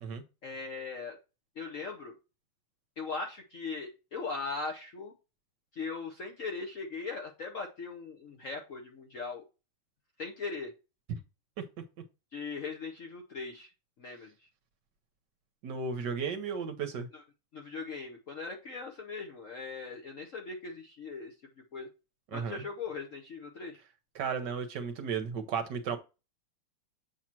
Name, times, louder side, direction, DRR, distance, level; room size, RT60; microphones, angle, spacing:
voice 1, 0.4-1.2 1.6-2.2 3.0-5.1 5.7-9.4 10.2-10.7 12.3-13.7 14.0-14.5 17.1-17.2 17.5-21.3 21.7-21.9 22.3-23.8, left 4 dB, 55° left, 0.9 m, -39 dB
voice 2, 15.6-17.1 22.3-22.6 24.1-26.0, right 6 dB, 65° right, 1.2 m, -34 dB
7.5 x 2.9 x 5.9 m
omnidirectional pair, 2.3 m